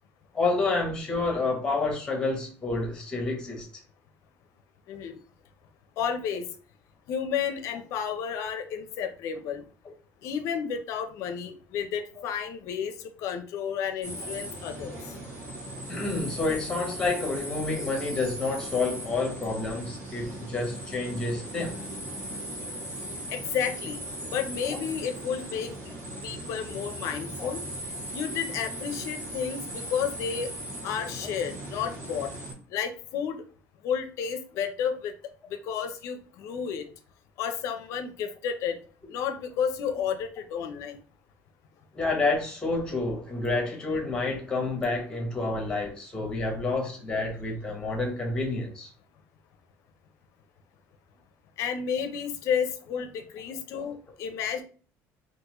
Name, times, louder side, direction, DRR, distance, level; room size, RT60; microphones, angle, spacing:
voice 1, 0.3-3.7 15.9-21.7 24.2-24.3 24.7-24.8 27.4-27.5 41.9-48.9 53.7-54.0, left 3 dB, 15° left, 0.9 m, -29 dB
voice 2, 4.9-5.2 6.0-6.5 7.1-9.6 10.2-12.9 13.2-15.0 23.3-24.0 24.3-25.9 26.2-27.6 28.1-29.6 29.9-30.5 30.8-32.3 32.7-33.4 33.8-35.1 35.5-36.8 37.4-38.8 39.1-41.0 51.6-54.6, left 7 dB, 55° left, 0.5 m, -31 dB
sound 1, 14.0-32.5, right 1 dB, 45° right, 1.8 m, -38 dB
3.8 x 2.5 x 2.9 m
cardioid pair, 175°, 6 cm